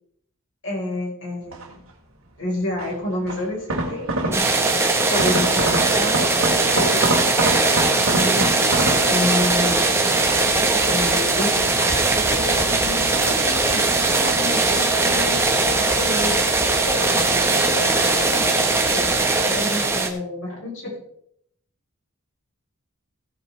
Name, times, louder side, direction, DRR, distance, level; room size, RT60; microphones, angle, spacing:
voice 1, 0.6-1.8 2.4-4.4 5.1-7.2 8.0-9.8 10.9-15.4 15.8-16.4 16.8-19.1 19.4-21.0, left 1 dB, 60° left, -3 dB, 4.6 m, -29 dB
sound 1, 1.5-1.9 2.8-4.7 5.0-9.8 10.3-11.1 11.6-12.4 12.9-14.2 14.5-15.7 16.0-16.6 17.0-17.4 17.6-17.7, right 2 dB, 75° right, 2.3 m, -28 dB
sound 2, 4.3-20.1, right 3 dB, 10° right, 1.3 m, -20 dB
16.5 x 8.4 x 3.4 m, 0.70 s
head